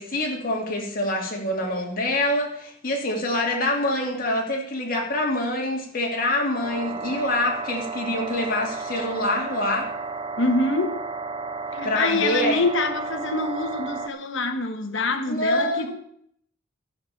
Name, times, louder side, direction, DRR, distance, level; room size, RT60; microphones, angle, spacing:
voice 1, 0.0-9.9 11.8-12.6 15.3-16.0, left 1 dB, 45° left, 2.7 m, -25 dB
sound 1, 6.6-14.1, right 4 dB, 25° right, 0.6 m, -33 dB
voice 2, 10.4-11.0 11.7-16.0, left 2 dB, 65° left, 1.4 m, -25 dB
13.0 x 6.9 x 7.1 m
head